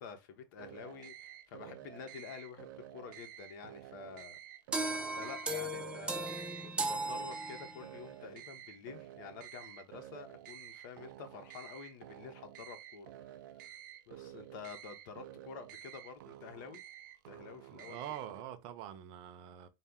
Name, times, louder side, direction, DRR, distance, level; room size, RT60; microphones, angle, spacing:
voice 1, 0.0-4.4 4.8-4.9 5.2-13.8 14.1-16.8 17.3-18.0, left 6 dB, 75° left, 1.0 m, -49 dB
sound 1, 0.6-18.4, right 12 dB, 85° right, 0.4 m, -51 dB
sound 2, 4.7-8.0, right 2 dB, 10° right, 0.5 m, -37 dB
voice 2, 17.7-19.7, right 11 dB, 50° right, 0.7 m, -45 dB
4.2 x 2.1 x 3.6 m
supercardioid pair, 150°, 10 cm